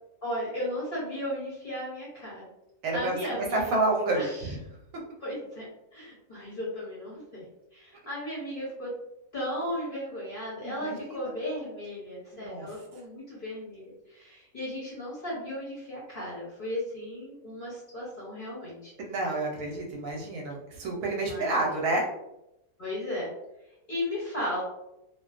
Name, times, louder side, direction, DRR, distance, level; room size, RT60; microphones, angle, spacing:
voice 1, 0.2-2.4 2.9-3.8 4.2-4.5 5.2-5.6 5.9-7.4 7.7-8.9 9.3-18.9 21.1-21.6 22.8-23.3 23.9-24.6, left 1 dB, 45° left, -6 dB, 0.8 m, -35 dB
voice 2, 2.8-4.6 10.6-11.3 12.3-12.7 19.0-22.1, right 2 dB, 70° right, -1 dB, 0.9 m, -29 dB
2.4 x 2.2 x 2.3 m, 0.87 s
omnidirectional pair, 1.6 m